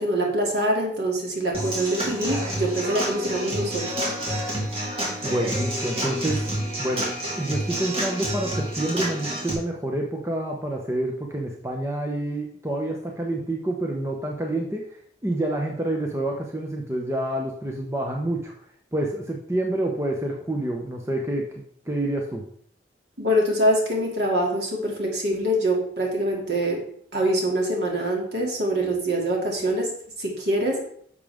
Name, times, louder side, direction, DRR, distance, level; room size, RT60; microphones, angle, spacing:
voice 1, 0.0-3.9 23.2-26.8 27.1-30.8, right 1 dB, 60° right, -1 dB, 2.7 m, -24 dB
Human voice / Acoustic guitar / Drum, 1.5-9.5, right 1 dB, 30° right, 2.4 m, -29 dB
voice 2, 5.2-7.1 7.4-14.8 15.2-18.5 18.9-21.4 21.9-22.4, right 1 dB, 15° right, 0 dB, 0.9 m, -28 dB
10.0 x 6.7 x 3.6 m, 0.62 s
head